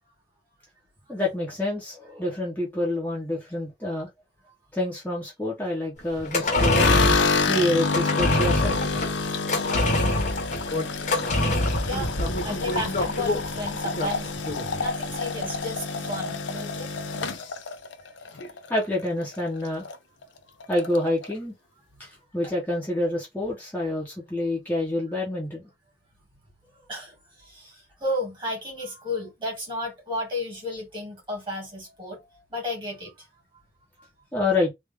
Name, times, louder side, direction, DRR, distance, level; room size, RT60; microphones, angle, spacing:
voice 1, 1.1-4.1 4.7-7.0 7.5-8.8 12.5-12.8 18.7-19.9 20.7-21.5 22.0-25.6 34.3-34.7, left 1 dB, 10° left, 0.9 m, -27 dB
sound 1, 6.1-14.8 15.1-15.2, left 1 dB, 40° left, 1.0 m, -25 dB
sound 2, 6.7-19.0 19.3-20.0 20.2-20.3 20.6-21.3, left 4 dB, 85° left, 0.6 m, -28 dB
voice 2, 11.9-12.2 12.4-14.3 14.8-16.9 17.2-17.3 26.9-33.1, left 1 dB, 25° right, 2.0 m, -33 dB
3.3 x 2.5 x 3.4 m
head